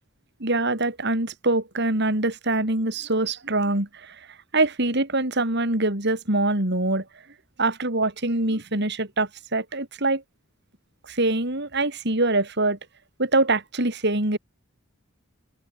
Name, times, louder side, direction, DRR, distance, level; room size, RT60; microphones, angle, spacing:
voice 1, 0.4-4.3 4.5-7.0 7.6-10.2 11.0-12.8 13.2-14.4, right 2 dB, 55° right, 5.0 m, -24 dB
open air
head